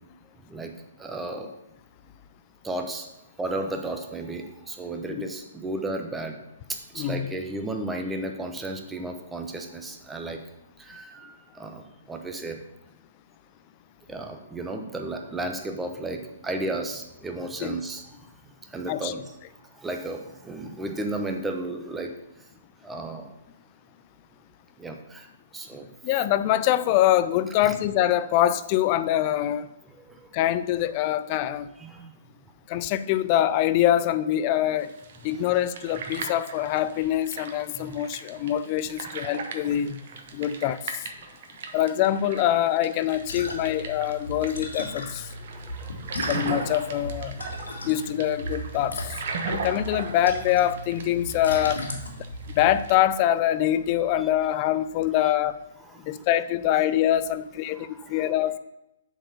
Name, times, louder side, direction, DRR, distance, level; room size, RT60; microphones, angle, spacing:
voice 1, 1.0-1.5 2.6-3.1 3.4-6.4 6.9-10.4 10.8-11.8 12.1-12.6 14.1-18.0 18.7-19.2 19.8-22.1 22.8-23.3 24.8-25.3 25.5-25.9 27.6-27.8 30.0-30.2 31.8-32.1 37.7-37.9 38.4-38.5 39.2-39.4 45.5-46.5 47.4-47.9 54.2-54.3 55.9-56.1 57.7-58.3, right 2 dB, 10° right, 4 dB, 0.9 m, -34 dB
voice 2, 7.0-7.3 17.6-17.8 18.9-19.1 26.0-29.7 30.3-31.7 32.7-34.9 35.2-40.0 40.3-41.0 41.7-45.3 46.3-47.4 47.8-49.0 49.5-51.8 52.5-55.6 56.1-58.6, left 12 dB, 40° left, 14 dB, 0.5 m, -24 dB
sound 1, 34.8-53.0, right 5 dB, 60° right, 1.2 m, -38 dB
sound 2, 43.1-52.8, equal, 85° left, 1.9 m, -36 dB
7.6 x 4.6 x 6.7 m, 0.90 s
hypercardioid pair, 130°, 0 cm